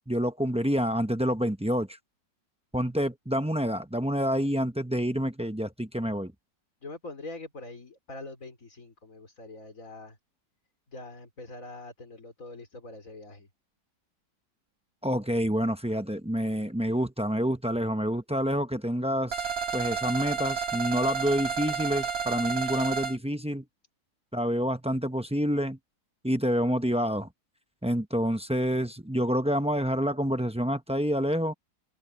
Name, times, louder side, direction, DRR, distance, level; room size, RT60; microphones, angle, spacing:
voice 1, 0.1-2.0 2.7-6.3 15.0-23.6 24.3-25.8 26.2-27.3 27.8-31.5, equal, 5° right, 0.5 m, -28 dB
voice 2, 6.8-10.2 10.9-13.5, left 2 dB, 45° left, 4.5 m, -43 dB
sound 1, 19.3-23.2, right 6 dB, 55° right, 2.3 m, -31 dB
omnidirectional pair, 1.9 m